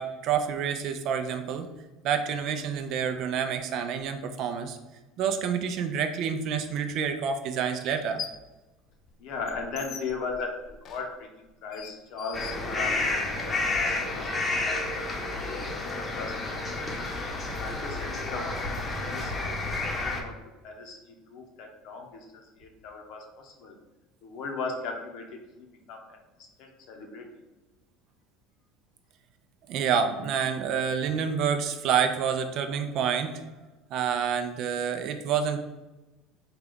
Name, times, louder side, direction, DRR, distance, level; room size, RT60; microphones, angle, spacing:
voice 1, 0.0-1.7 2.0-4.8 5.2-8.2 29.7-33.3 33.9-35.6, right 7 dB, 60° right, 7 dB, 0.4 m, -28 dB
sound 1, 6.7-6.8 7.9-8.5 8.9-13.3, left 7 dB, 50° left, 0.3 m, -43 dB
voice 2, 9.2-13.0 13.4-17.1 17.6-23.7 24.2-27.3, left 4 dB, 65° left, 2 dB, 0.7 m, -38 dB
sound 2, 12.3-20.2, left 2 dB, 25° left, 0.7 m, -30 dB
3.7 x 2.3 x 3.5 m, 1.1 s
supercardioid pair, 90°, 0 cm